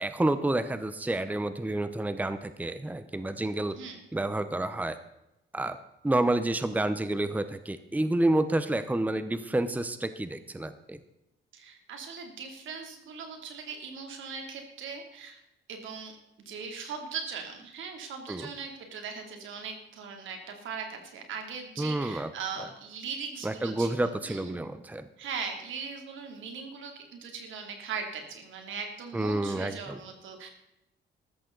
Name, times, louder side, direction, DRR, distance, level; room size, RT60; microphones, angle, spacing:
voice 1, 0.0-3.8 4.1-5.0 5.5-5.8 6.0-11.0 18.3-18.5 21.8-22.3 23.4-25.1 29.1-30.0, right 1 dB, 10° right, 11 dB, 0.8 m, -29 dB
voice 2, 11.5-15.4 15.7-16.1 16.4-24.5 25.2-30.5, right 5 dB, 75° right, 4 dB, 3.0 m, -39 dB
14.0 x 13.5 x 4.0 m, 0.89 s
cardioid pair, 90°, 20 cm